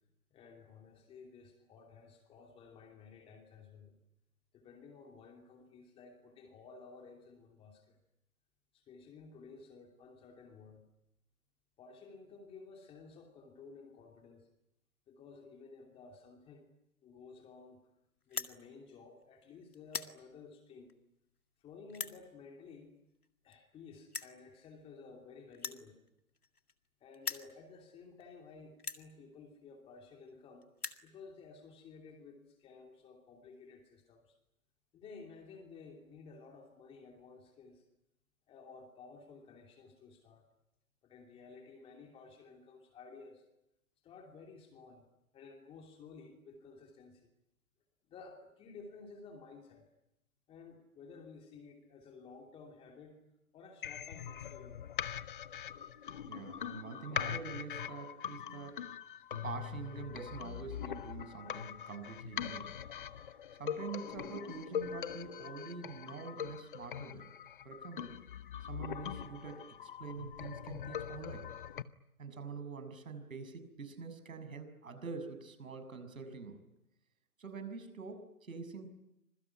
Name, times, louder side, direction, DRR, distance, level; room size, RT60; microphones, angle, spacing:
voice 1, 0.3-3.9 4.5-8.0 8.7-10.8 11.8-14.5 15.1-16.7 17.0-17.8 18.3-20.9 21.6-22.9 23.4-26.0 27.0-30.7 31.0-34.3 34.9-37.8 38.5-40.4 41.0-43.4 44.0-45.0 45.3-47.3 48.1-49.8 50.5-53.2 53.5-54.9, left 4 dB, 10° left, 3 dB, 2.8 m, -54 dB
sound 1, 18.2-18.5 19.2-19.4 19.7-20.1 20.9-21.0 21.9-22.2 23.2-23.3 23.5-23.6 24.1-24.4 25.5-26.9 27.1-27.5 28.2-28.3 28.8-29.0 30.0-30.1 30.3-30.4 30.6-31.0, left 4 dB, 85° left, 2.2 m, -41 dB
sound 2, 53.8-71.8, left 9 dB, 35° left, 0.9 m, -42 dB
voice 2, 56.3-58.8 59.4-62.7 63.6-67.3 67.6-68.1 68.7-71.5 72.2-76.6 77.4-78.9, right 5 dB, 65° right, 9 dB, 6.7 m, -45 dB
26.5 x 22.5 x 9.8 m, 0.85 s
figure-of-eight pair, 145°, 44 cm